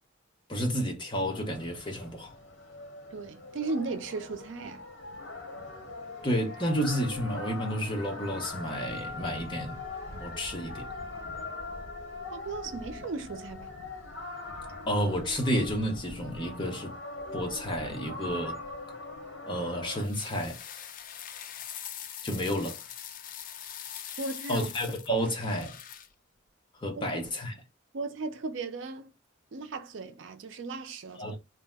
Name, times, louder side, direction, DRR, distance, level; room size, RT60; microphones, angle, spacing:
voice 1, 0.5-2.3 6.2-9.8 10.2-10.9 14.9-16.9 17.3-18.6 19.5-20.6 22.2-22.8 24.5-25.8 26.8-27.6 31.2-31.4, equal, 25° left, 0.7 m, -31 dB
sound 1, 1.3-20.1, left 2 dB, 60° left, 0.9 m, -41 dB
voice 2, 3.1-4.9 12.3-13.7 24.2-24.7 27.1-27.2 27.9-29.1 29.5-31.4, right 3 dB, 70° right, 0.5 m, -36 dB
sound 2, 20.0-26.1, left 9 dB, 45° left, 0.3 m, -42 dB
2.6 x 2.1 x 3.3 m
head